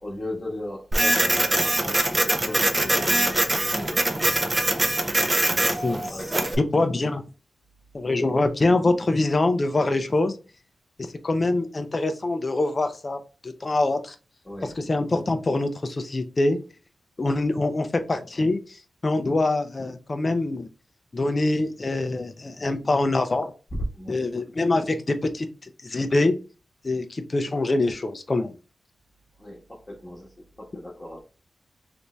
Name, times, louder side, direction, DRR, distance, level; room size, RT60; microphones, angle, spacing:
voice 1, 0.0-3.4 3.8-4.0 5.6-6.6 14.4-14.8 23.9-24.2 29.4-31.2, left 1 dB, 15° left, -5 dB, 1.1 m, -37 dB
Printer, 0.9-6.6, right 1 dB, 20° right, 0.5 m, -23 dB
voice 2, 6.7-7.2 7.9-10.3 11.1-14.1 14.8-16.6 17.2-18.6 19.0-20.7 21.1-23.5 24.1-26.3 26.8-28.5, left 2 dB, 35° left, 8 dB, 0.4 m, -24 dB
3.4 x 2.7 x 3.0 m, 0.33 s
wide cardioid pair, 125°, 0 cm